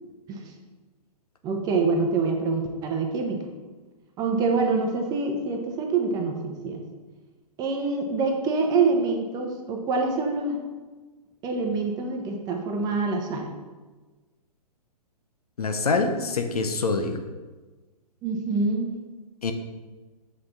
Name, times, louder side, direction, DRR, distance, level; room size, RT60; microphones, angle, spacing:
voice 1, 1.4-3.5 4.2-6.9 7.6-10.6 11.4-13.5 18.2-18.9, right 4 dB, 20° right, 2 dB, 0.9 m, -26 dB
voice 2, 15.6-17.2 19.4-19.5, left 4 dB, 65° left, 6 dB, 0.9 m, -25 dB
7.8 x 5.6 x 4.0 m, 1.3 s
figure-of-eight pair, 120°, 21 cm